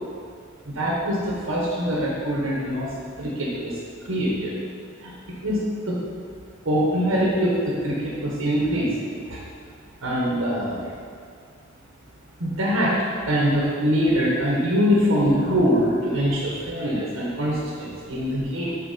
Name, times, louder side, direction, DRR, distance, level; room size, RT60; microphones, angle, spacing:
voice 1, 0.6-2.9 3.2-3.7 4.0-4.5 5.0-5.6 5.8-6.0 6.6-9.4 10.0-10.9 12.4-13.0 13.2-18.8, equal, 85° right, -5 dB, 1.3 m, -23 dB
6.8 x 4.6 x 4.3 m, 2.1 s
head